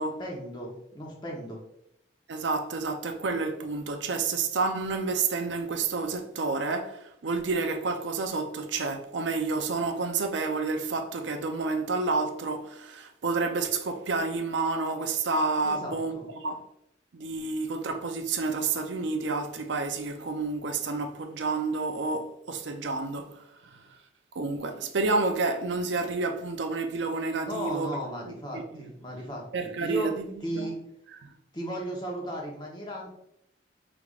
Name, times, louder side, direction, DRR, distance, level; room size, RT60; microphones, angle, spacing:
voice 1, 0.2-1.6 15.6-16.2 27.4-30.1 30.4-30.8 31.5-33.1, right 1 dB, 25° left, 0.9 m, -35 dB
voice 2, 2.3-16.6 17.1-23.8 24.3-27.9 28.3-28.8 29.5-30.3 30.5-30.7 31.2-31.3, right 3 dB, 75° right, 0.5 m, -30 dB
4.9 x 3.3 x 2.4 m
head